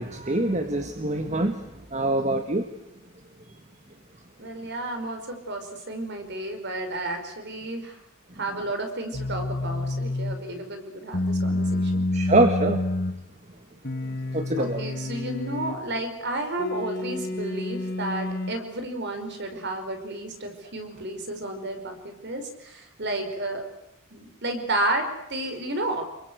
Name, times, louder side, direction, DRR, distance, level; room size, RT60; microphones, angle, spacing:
voice 1, 0.0-1.5 1.9-2.7 12.1-12.8 14.3-14.8, right 2 dB, 35° right, 7 dB, 1.6 m, -24 dB
voice 2, 4.4-8.0 8.4-12.0 14.6-23.6 24.1-26.0, right 1 dB, 50° right, 6 dB, 5.3 m, -32 dB
sound 1, 9.1-10.4 11.1-13.2 13.8-15.8 16.6-18.6, left 2 dB, 45° left, 1.9 m, -28 dB
28.0 x 23.0 x 8.1 m, 0.91 s
head